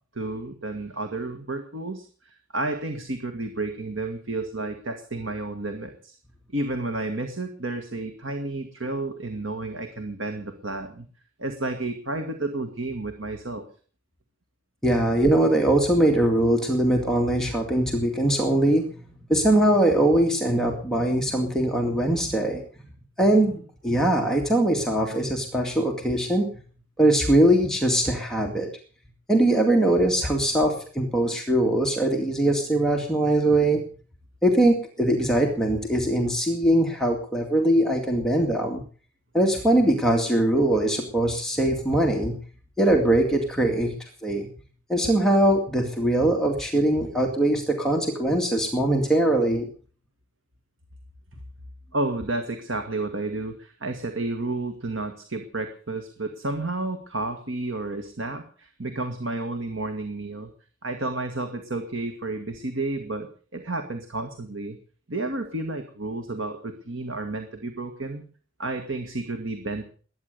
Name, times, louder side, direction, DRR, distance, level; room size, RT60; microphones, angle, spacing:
voice 1, 0.1-6.1 6.5-11.1 11.4-13.7 51.9-60.5 60.8-64.8 65.1-68.2 68.6-69.8, right 2 dB, 80° right, 6 dB, 1.9 m, -31 dB
voice 2, 14.8-18.9 19.3-22.6 23.2-26.5 27.0-28.7 29.3-33.8 34.4-38.8 39.3-42.4 42.8-44.0 44.2-44.5 44.9-49.7, right 1 dB, 5° left, 0 dB, 2.2 m, -21 dB
21.0 x 9.8 x 6.8 m, 0.42 s
head